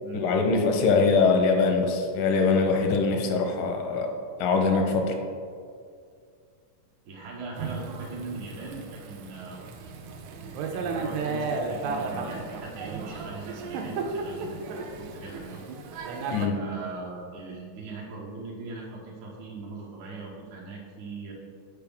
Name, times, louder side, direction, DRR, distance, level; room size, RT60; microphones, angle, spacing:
voice 1, 0.1-4.1 4.4-5.2 16.3-16.6, left 4 dB, 85° left, 4 dB, 2.3 m, -23 dB
voice 2, 7.1-9.6 10.7-15.8 16.5-21.3, right 3 dB, 70° right, -4 dB, 2.0 m, -40 dB
Thunder / Rain, 7.6-16.5, right 4 dB, 90° right, 2.3 m, -34 dB
6.8 x 4.6 x 3.5 m, 2.2 s
omnidirectional pair, 3.9 m